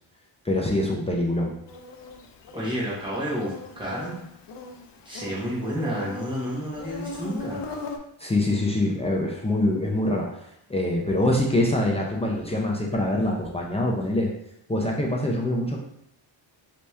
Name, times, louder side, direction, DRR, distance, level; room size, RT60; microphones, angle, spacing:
voice 1, 0.4-1.5 8.2-10.3 10.7-14.3 14.7-15.8, left 1 dB, 15° left, -2 dB, 0.5 m, -24 dB
Insect, 1.7-8.0, left 2 dB, 65° left, 0.6 m, -39 dB
voice 2, 2.5-4.2 5.0-7.6, equal, 10° right, -7 dB, 1.4 m, -30 dB
3.3 x 2.9 x 3.3 m, 0.77 s
cardioid pair, 115°, 47 cm